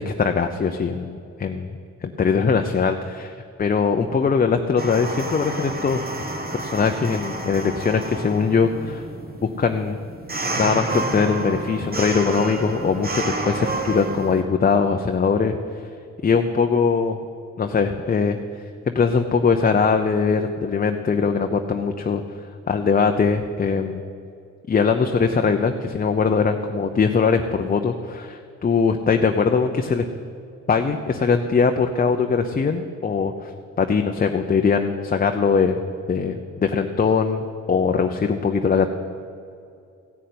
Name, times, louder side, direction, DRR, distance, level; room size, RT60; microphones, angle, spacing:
voice 1, 0.0-1.7 2.0-6.1 6.5-9.1 9.4-10.0 10.6-15.6 16.2-17.2 17.6-18.4 18.9-24.0 24.7-30.0 30.7-33.5 33.8-35.8 36.1-38.9, left 5 dB, 30° left, 5 dB, 0.7 m, -21 dB
sound 1, 4.8-14.4, right 2 dB, 30° right, 1.5 m, -30 dB
15.0 x 6.6 x 9.4 m, 2.5 s
cardioid pair, 90°, 30 cm